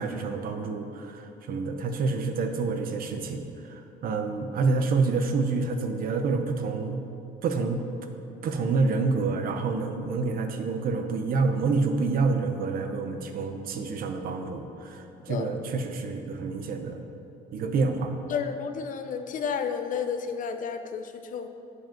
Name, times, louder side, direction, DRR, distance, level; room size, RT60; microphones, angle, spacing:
voice 1, 0.0-7.0 7.4-7.8 8.4-17.0 17.5-18.1, right 4 dB, 60° right, 6 dB, 0.8 m, -28 dB
voice 2, 18.3-21.5, left 6 dB, 50° left, 7 dB, 0.6 m, -31 dB
7.8 x 4.9 x 5.9 m, 2.9 s
cardioid pair, 110°, 17 cm